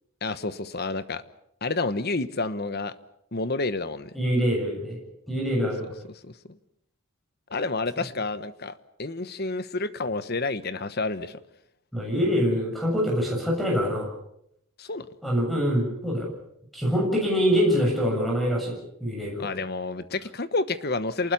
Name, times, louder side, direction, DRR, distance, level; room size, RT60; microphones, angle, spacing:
voice 1, 0.2-1.2 1.6-2.9 3.3-4.1 6.1-6.6 7.5-11.4 14.8-15.1 19.4-21.3, left 3 dB, 45° left, 13 dB, 1.1 m, -29 dB
voice 2, 4.1-5.0 5.3-5.9 11.9-14.1 15.2-16.3 16.7-18.8 19.0-19.5, equal, ahead, -1 dB, 7.2 m, -24 dB
27.5 x 20.0 x 7.0 m, 0.77 s
head